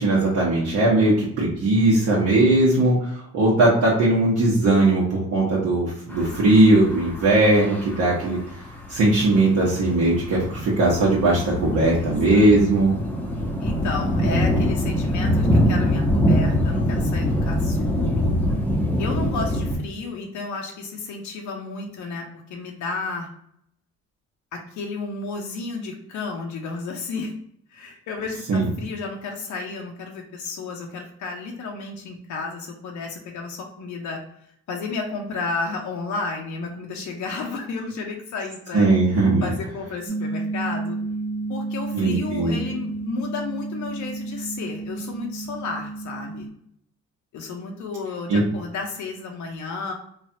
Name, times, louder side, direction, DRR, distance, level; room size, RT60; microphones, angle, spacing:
voice 1, 0.0-8.4 8.9-12.9 28.5-28.7 38.7-39.5 41.9-42.6 48.3-48.4, right 2 dB, 70° right, -7 dB, 1.0 m, -19 dB
voice 2, 1.0-1.3 12.0-12.5 13.6-18.3 19.0-23.3 24.5-27.3 27.7-34.2 34.7-38.9 39.4-41.0 41.5-46.5 47.3-49.9, left 4 dB, 75° left, 2 dB, 0.7 m, -32 dB
sound 1, 6.1-19.8, equal, 5° left, 0.7 m, -24 dB
sound 2, 40.1-46.5, right 3 dB, 35° right, 1.2 m, -31 dB
3.1 x 2.3 x 2.7 m, 0.71 s
cardioid pair, 90°, 30 cm